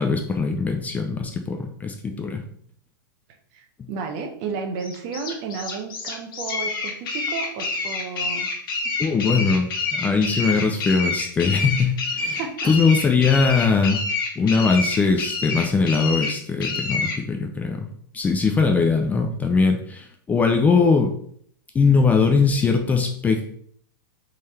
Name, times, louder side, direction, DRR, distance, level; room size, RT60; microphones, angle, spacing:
voice 1, 0.0-2.4 9.0-12.4 12.6-14.0 14.4-17.9 18.1-21.1 21.7-23.4, left 4 dB, 15° left, 4 dB, 0.4 m, -21 dB
voice 2, 3.5-8.5 12.4-12.7, right 5 dB, 40° right, 5 dB, 0.8 m, -32 dB
sound 1, 4.8-17.2, left 4 dB, 65° left, 1.4 m, -28 dB
3.7 x 3.2 x 4.2 m, 0.64 s
hypercardioid pair, 140°, 12 cm